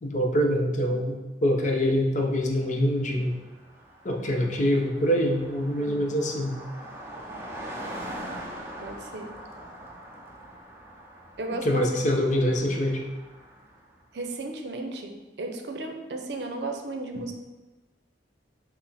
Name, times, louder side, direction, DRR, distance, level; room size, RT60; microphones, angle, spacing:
voice 1, 0.0-3.4 4.0-6.6 11.6-13.0, equal, 45° left, 2 dB, 0.6 m, -25 dB
Car passing by, 2.7-2.8 3.0-14.0, right 1 dB, 15° right, 0.5 m, -42 dB
voice 2, 4.3-4.7 5.8-6.0 8.8-9.3 11.4-12.0 14.1-17.3, right 2 dB, 70° right, 4 dB, 0.6 m, -34 dB
5.9 x 2.1 x 4.1 m, 1.2 s
head